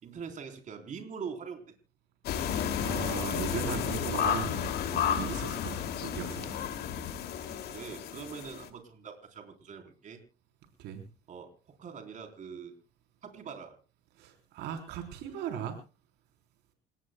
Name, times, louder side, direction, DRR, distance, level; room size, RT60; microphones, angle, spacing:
voice 1, 0.0-1.6 7.5-10.2 11.3-11.5 11.8-12.7 13.2-13.8, right 6 dB, 50° right, 5 dB, 3.9 m, -43 dB
sound 1, 2.2-8.7, left 9 dB, 70° left, 2.6 m, -32 dB
voice 2, 2.4-6.6 10.8-11.0 14.2-15.8, right 8 dB, 85° right, 5 dB, 3.8 m, -38 dB
28.0 x 17.5 x 2.2 m, 0.32 s
cardioid pair, 110°, 17 cm